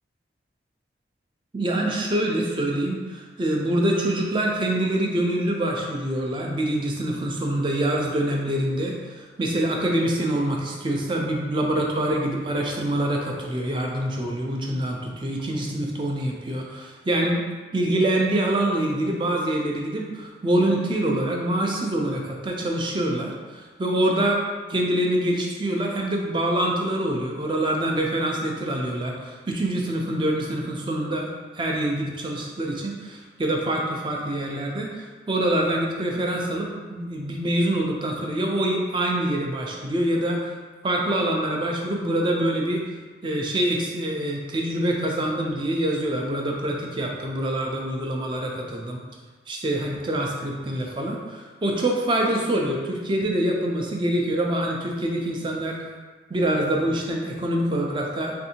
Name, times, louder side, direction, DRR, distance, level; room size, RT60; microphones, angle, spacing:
voice 1, 1.5-17.4 17.7-24.4 24.7-31.3 31.5-40.4 40.8-42.8 43.2-49.0 49.5-55.8 56.3-58.3, right 1 dB, 25° right, 0 dB, 0.4 m, -25 dB
3.4 x 2.6 x 2.7 m, 1.4 s
head